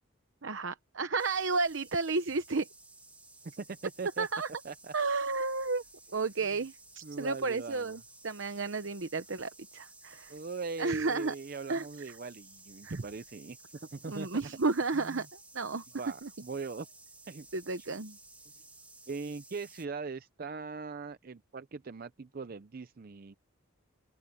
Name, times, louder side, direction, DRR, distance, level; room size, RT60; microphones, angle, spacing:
voice 1, 0.4-2.7 4.2-4.5 4.9-5.8 6.1-10.3 10.8-11.3 11.7-11.9 12.8-13.0 14.1-15.8 16.2-16.3 17.5-18.2, right 3 dB, 65° right, 0.9 m, -32 dB
sound 1, 1.2-19.9, right 2 dB, 5° right, 1.3 m, -55 dB
voice 2, 3.6-4.3 4.6-4.9 7.0-8.0 10.3-14.4 15.0-15.2 16.0-16.9 17.3-17.5 19.1-23.3, right 4 dB, 45° right, 0.5 m, -41 dB
open air
head